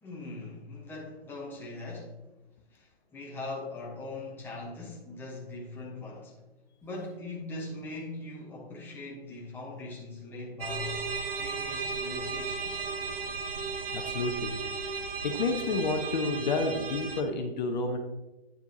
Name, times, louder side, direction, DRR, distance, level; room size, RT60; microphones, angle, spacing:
voice 1, 0.0-2.2 2.7-6.4 6.8-11.0 11.3-12.9, left 2 dB, 5° left, -3 dB, 1.1 m, -41 dB
sound 1, 10.6-17.2, right 5 dB, 60° right, 1.1 m, -35 dB
voice 2, 13.9-14.6 15.2-18.0, left 3 dB, 45° left, 4 dB, 0.9 m, -30 dB
9.3 x 6.8 x 2.9 m, 1.0 s
figure-of-eight pair, 140°, 32 cm